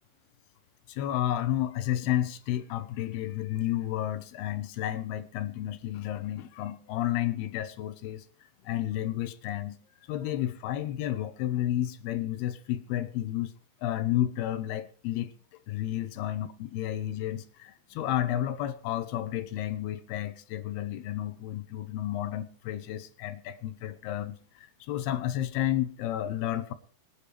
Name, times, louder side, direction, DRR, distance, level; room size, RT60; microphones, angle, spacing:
voice 1, 0.9-8.2 8.6-9.8 10.1-13.5 13.8-15.3 15.7-26.7, left 12 dB, 80° left, 2.8 m, -31 dB
25.5 x 8.7 x 3.2 m
omnidirectional pair, 4.8 m